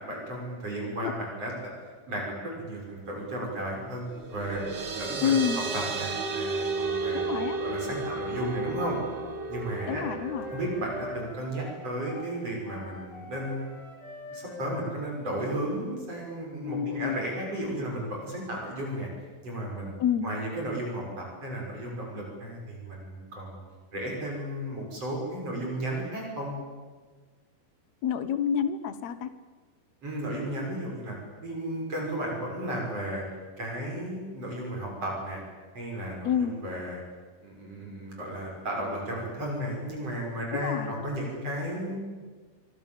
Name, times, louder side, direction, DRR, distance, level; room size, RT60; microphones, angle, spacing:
voice 1, 0.0-1.5 2.1-4.6 4.9-5.4 5.7-9.0 9.5-10.0 10.5-13.7 14.3-19.1 19.4-19.9 20.2-23.6 23.9-26.5 30.0-33.2 33.6-35.4 35.7-37.0 37.4-42.0, right 1 dB, 35° right, -1 dB, 7.8 m, -34 dB
sound 1, 4.1-11.3, right 4 dB, 60° right, 1.1 m, -33 dB
voice 2, 5.2-5.6 7.1-7.6 9.9-10.5 16.6-17.2 20.0-20.3 28.0-29.3 36.2-36.5 40.5-40.9, left 8 dB, 80° left, 12 dB, 1.6 m, -28 dB
Wind instrument woodwind instrument, 8.8-16.3, left 2 dB, 60° left, 7.6 m, -44 dB
26.0 x 24.0 x 7.5 m, 1.4 s
omnidirectional pair, 4.9 m